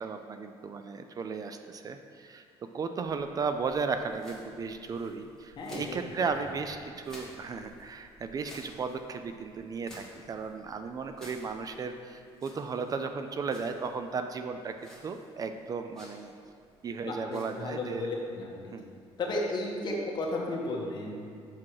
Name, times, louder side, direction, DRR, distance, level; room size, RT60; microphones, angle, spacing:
voice 1, 0.0-2.4 2.7-16.3 16.8-18.1 18.7-18.9, right 5 dB, 35° right, 7 dB, 0.4 m, -35 dB
sound 1, 3.0-20.3, left 1 dB, 5° left, 1.7 m, -56 dB
voice 2, 6.2-6.6 17.0-18.8 19.2-21.2, left 2 dB, 45° left, -2 dB, 1.4 m, -34 dB
6.1 x 6.0 x 4.8 m, 2.4 s
cardioid pair, 120°, 11 cm